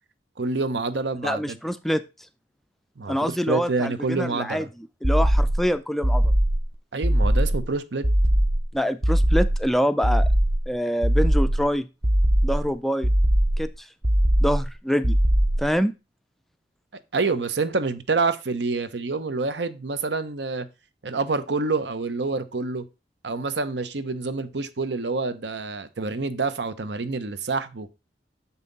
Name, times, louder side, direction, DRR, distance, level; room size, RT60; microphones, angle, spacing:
voice 1, 0.4-1.6 3.0-4.7 6.9-8.1 17.1-20.7 21.0-22.8 23.2-27.9, right 3 dB, 75° right, 0.9 m, -27 dB
voice 2, 1.2-2.0 3.1-6.2 8.7-10.3 10.7-11.9 12.4-13.1 13.6-13.9 14.4-15.2 15.6-15.9, equal, ahead, 0.3 m, -25 dB
sound 1, 5.0-5.7 6.0-6.7 7.0-7.7 8.0-8.7 9.0-9.7 10.0-10.7 11.0-11.7 12.0-12.7 13.0-13.7 14.0-14.7 15.0-15.7, right 1 dB, 30° right, 0.6 m, -20 dB
7.0 x 5.7 x 3.9 m
head